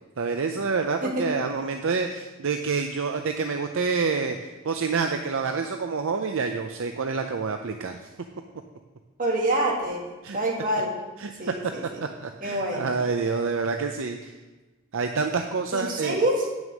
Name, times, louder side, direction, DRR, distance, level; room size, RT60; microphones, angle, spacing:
voice 1, 0.2-8.0 10.2-10.4 11.2-11.5 12.0-14.3 14.9-16.2, right 4 dB, 65° right, 5 dB, 0.5 m, -27 dB
voice 2, 9.2-10.0 10.3-10.9 11.4-12.0 12.4-12.9 15.7-16.5, right 1 dB, 40° right, -2 dB, 2.1 m, -26 dB
9.1 x 6.3 x 6.3 m, 1.2 s
head